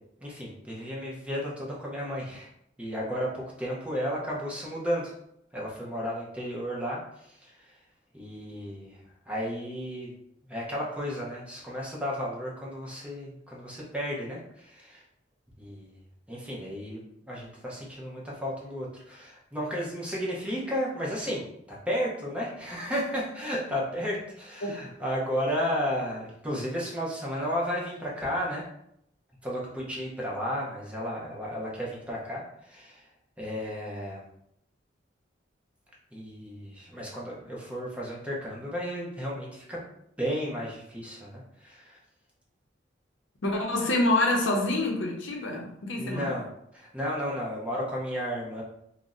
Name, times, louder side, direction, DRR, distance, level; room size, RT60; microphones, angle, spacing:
voice 1, 0.2-2.5 2.8-5.1 5.5-7.7 8.1-9.0 9.3-10.1 10.5-15.0 15.6-15.9 16.3-17.0 17.3-21.4 21.7-28.6 29.4-33.0 33.4-34.2 36.1-39.8 40.2-42.0 46.0-46.5 46.7-48.6, equal, 5° right, -4 dB, 0.7 m, -33 dB
voice 2, 43.4-46.3, left 2 dB, 75° left, 1 dB, 0.6 m, -26 dB
2.6 x 2.0 x 3.6 m, 0.75 s
head